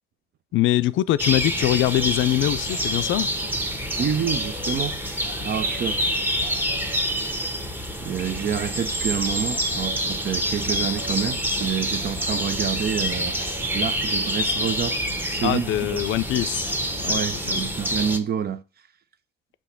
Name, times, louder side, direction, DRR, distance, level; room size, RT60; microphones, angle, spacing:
voice 1, 0.5-3.3 15.4-16.7 17.0-17.2 17.5-17.6, left 14 dB, 75° left, 0.4 m, -23 dB
sound 1, 1.2-18.2, equal, 10° right, 1.1 m, -27 dB
voice 2, 4.0-6.0 7.4-7.6 8.0-15.0 15.2-16.0 17.1-18.6, right 8 dB, 50° right, 0.7 m, -28 dB
6.3 x 3.0 x 5.7 m
cardioid pair, 90°, 20 cm